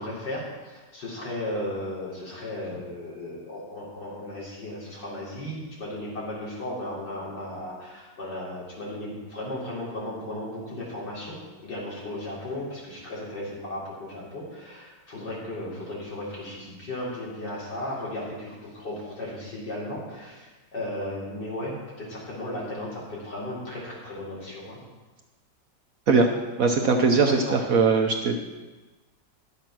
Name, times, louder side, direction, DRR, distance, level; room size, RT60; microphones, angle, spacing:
voice 1, 0.0-24.8 27.2-27.6, left 1 dB, 65° left, -6 dB, 3.9 m, -35 dB
voice 2, 26.6-28.4, right 4 dB, 60° right, 2 dB, 1.0 m, -20 dB
11.5 x 6.9 x 6.0 m, 1.2 s
omnidirectional pair, 2.0 m